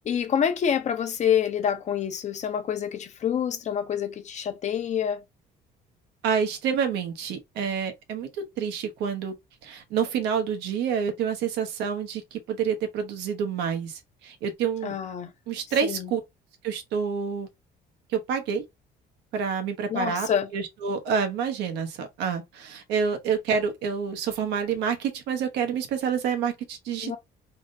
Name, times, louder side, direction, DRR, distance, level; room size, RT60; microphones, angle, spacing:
voice 1, 0.0-5.2 14.8-15.3 15.8-16.1 19.9-20.5 27.0-27.2, left 8 dB, 45° left, 0.6 m, -27 dB
voice 2, 6.2-9.3 9.6-14.9 15.5-16.2 16.6-17.5 18.1-18.6 19.3-20.3 20.5-27.2, right 7 dB, 85° right, 0.9 m, -28 dB
3.5 x 2.2 x 2.6 m
cardioid pair, 110°, 17 cm